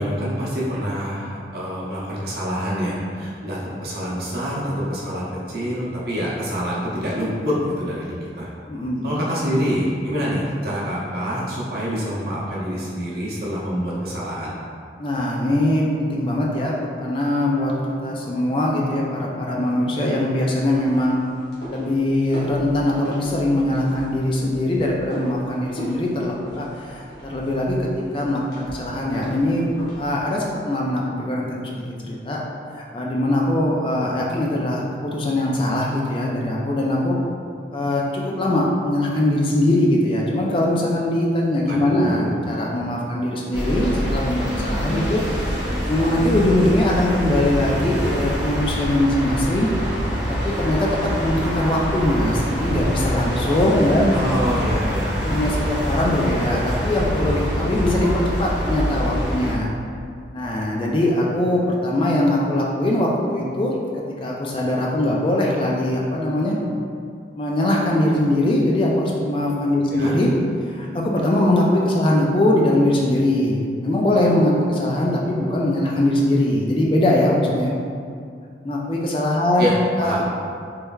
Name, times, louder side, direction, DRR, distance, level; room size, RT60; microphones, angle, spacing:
voice 1, 0.0-8.5 9.0-14.5 41.7-42.6 54.1-55.1 69.9-70.1 79.6-80.2, equal, 60° right, -7 dB, 0.7 m, -26 dB
voice 2, 8.7-9.1 15.0-16.7 17.0-17.7 18.0-21.2 21.7-27.9 28.1-29.7 30.0-32.4 32.8-37.2 37.7-45.2 45.5-49.7 50.3-50.9 51.2-54.1 55.2-59.7 60.3-66.6 67.4-70.3 70.7-77.7 78.6-79.7 80.0-80.2, left 1 dB, 30° left, -2 dB, 0.3 m, -21 dB
sound 1, 20.5-30.3, equal, 70° left, 0.9 m, -37 dB
sound 2, 43.5-59.5, equal, 5° right, 0.8 m, -25 dB
3.2 x 3.1 x 2.3 m, 2.3 s
head